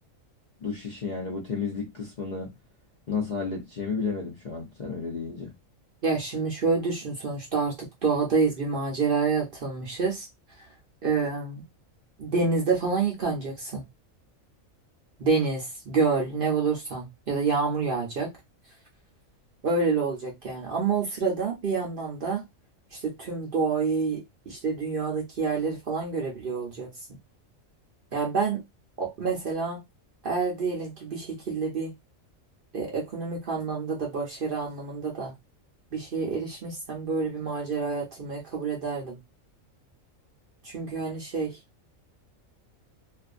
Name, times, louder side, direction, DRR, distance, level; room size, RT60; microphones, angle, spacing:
voice 1, 0.6-2.5 3.1-5.5, left 5 dB, 50° left, 0.5 m, -32 dB
voice 2, 6.0-10.3 10.6-10.7 11.0-11.6 12.2-13.8 15.2-18.3 19.6-22.4 22.9-26.9 28.1-28.6 29.0-29.8 30.2-31.9 32.7-35.3 35.9-39.2 40.6-41.6, right 4 dB, 50° right, 0.7 m, -28 dB
2.4 x 2.4 x 2.4 m
omnidirectional pair, 1.4 m